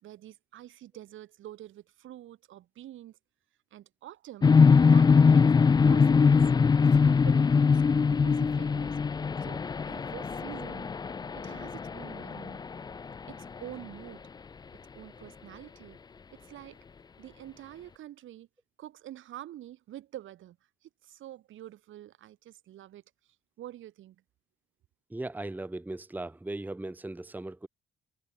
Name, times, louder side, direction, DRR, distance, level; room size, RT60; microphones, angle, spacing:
voice 1, 0.0-3.2 3.7-4.6 4.8-5.6 5.8-6.5 6.9-9.0 9.4-10.9 11.3-12.6 13.3-14.3 14.9-16.0 16.3-16.8 17.2-18.5 18.8-20.6 20.8-23.0 23.6-24.2, right 13 dB, 80° right, 3.9 m, -47 dB
sound 1, 4.4-13.3, left 5 dB, 20° left, 0.4 m, -22 dB
voice 2, 25.1-27.7, right 2 dB, 10° right, 1.0 m, -38 dB
cardioid pair, 90°, 20 cm